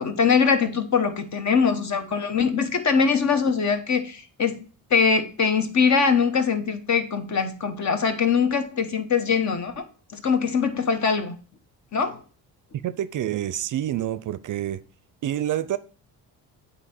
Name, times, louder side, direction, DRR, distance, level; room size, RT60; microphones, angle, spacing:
voice 1, 0.0-4.6 4.9-9.8 10.1-11.4 11.9-12.2, left 5 dB, 45° left, 1.0 m, -22 dB
voice 2, 12.8-14.8 15.2-15.8, right 12 dB, 50° right, 0.5 m, -27 dB
8.3 x 2.9 x 4.3 m
cardioid pair, 80°, 39 cm